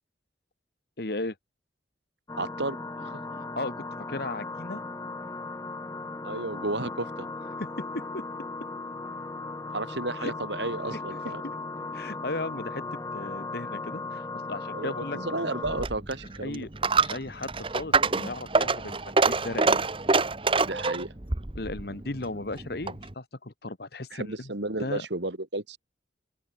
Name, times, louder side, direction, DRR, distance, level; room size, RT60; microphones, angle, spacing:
voice 1, 1.0-1.3 3.3-4.8 7.6-7.7 7.9-8.2 10.2-10.3 11.1-11.3 11.9-12.8 13.1-15.2 16.4-16.7 17.0-19.8 21.5-24.5 24.8-25.1, left 2 dB, 55° left, 1.4 m, -36 dB
sound 1, 2.3-15.9, left 3 dB, 15° left, 0.7 m, -37 dB
voice 2, 2.4-3.2 6.2-7.3 9.7-11.4 14.7-16.7 20.6-21.1 24.1-25.8, right 2 dB, 70° right, 2.3 m, -33 dB
Coin (dropping), 15.6-23.1, right 3 dB, 30° right, 1.2 m, -26 dB
open air
head